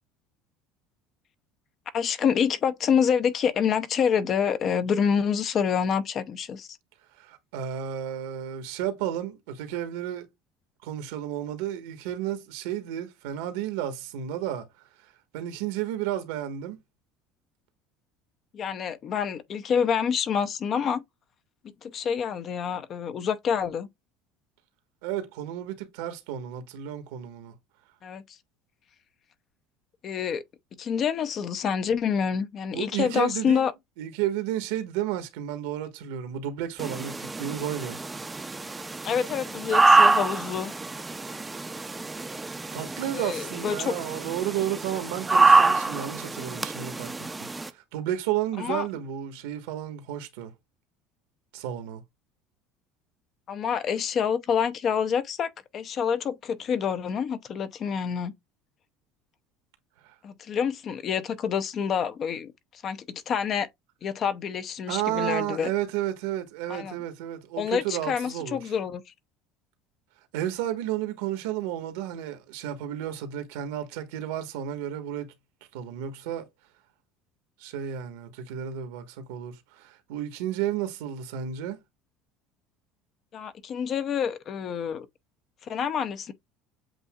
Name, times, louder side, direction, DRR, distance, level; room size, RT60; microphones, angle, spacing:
voice 1, 1.9-6.7 18.5-21.0 21.8-23.9 28.0-28.2 30.0-30.4 30.8-33.7 39.0-40.7 43.1-43.9 48.6-48.9 53.5-58.3 60.2-62.5 62.8-63.7 64.0-65.7 66.7-67.0 67.6-69.0 83.3-85.1 85.7-86.3, left 7 dB, 40° left, 0.6 m, -27 dB
voice 2, 7.2-10.3 10.8-14.7 15.0-16.8 25.0-27.5 32.7-33.6 34.0-38.0 42.7-47.1 47.5-50.5 51.5-52.0 60.0-60.1 64.9-68.6 70.3-75.3 75.7-76.5 77.6-81.8, right 11 dB, 85° right, 1.3 m, -32 dB
sound 1, 36.8-47.7, right 3 dB, 15° right, 0.5 m, -25 dB
7.9 x 2.7 x 2.4 m
supercardioid pair, 120°, 0 cm